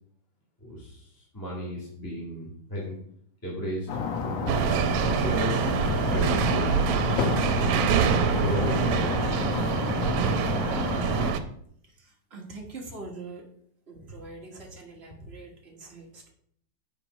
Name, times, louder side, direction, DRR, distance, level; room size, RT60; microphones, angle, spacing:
voice 1, 0.6-2.9 3.4-3.9 4.2-4.6 4.9-5.7 6.1-7.1 8.4-9.5, equal, 10° left, -6 dB, 1.5 m, -34 dB
sound 1, 3.9-11.3, left 5 dB, 65° left, 2.0 m, -29 dB
sound 2, 4.5-11.4, right 8 dB, 90° right, 2.0 m, -26 dB
voice 2, 11.9-13.5 13.9-16.3, right 3 dB, 55° right, -1 dB, 0.7 m, -43 dB
7.5 x 5.0 x 5.1 m, 0.65 s
omnidirectional pair, 3.3 m